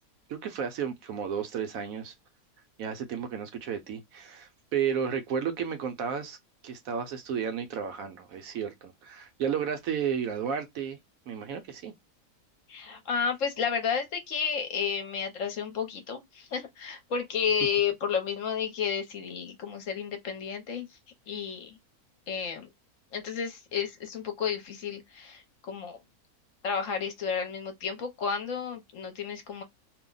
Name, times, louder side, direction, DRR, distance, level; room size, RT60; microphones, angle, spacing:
voice 1, 0.3-2.1 2.8-6.4 6.6-11.0 11.3-11.9, right 7 dB, 70° right, 1.0 m, -32 dB
voice 2, 12.7-21.0 21.3-21.8 22.3-22.7 23.1-26.0 26.6-29.6, left 7 dB, 65° left, 1.0 m, -32 dB
2.7 x 2.1 x 3.8 m
omnidirectional pair, 1.6 m